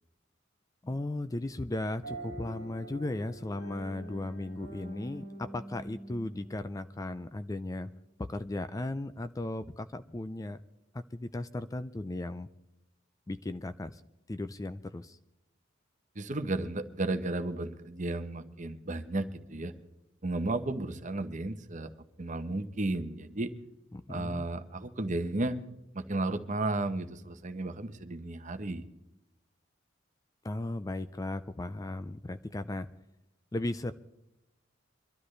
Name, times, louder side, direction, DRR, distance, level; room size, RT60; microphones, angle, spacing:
voice 1, 0.8-7.9 8.2-10.6 10.9-12.5 13.3-14.0 14.3-15.2 23.9-24.5 30.4-32.9 33.5-33.9, left 2 dB, 20° left, 12 dB, 0.4 m, -36 dB
sound 1, 2.0-7.5, right 1 dB, 75° left, 6.6 m, -45 dB
voice 2, 16.1-19.7 20.2-21.9 22.2-23.5 24.1-25.6 25.9-28.8, right 2 dB, 40° right, 9 dB, 0.9 m, -33 dB
23.5 x 12.5 x 3.3 m, 0.89 s
head